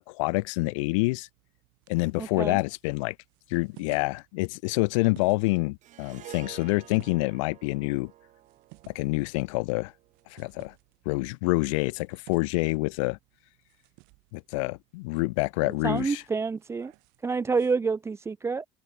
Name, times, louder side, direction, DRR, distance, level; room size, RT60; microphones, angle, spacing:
voice 1, 0.1-1.3 1.9-3.2 3.5-8.1 8.9-9.9 10.3-10.7 11.1-13.2 14.3-16.2, left 25 dB, 90° left, 0.5 m, -27 dB
sound 1, 0.9-17.7, right 34 dB, 75° right, 6.1 m, -58 dB
voice 2, 2.2-2.6 15.6-16.9 17.2-18.7, right 4 dB, 15° right, 0.7 m, -28 dB
Harp, 5.8-10.2, right 13 dB, 50° right, 5.7 m, -50 dB
open air
supercardioid pair, 115°, 16 cm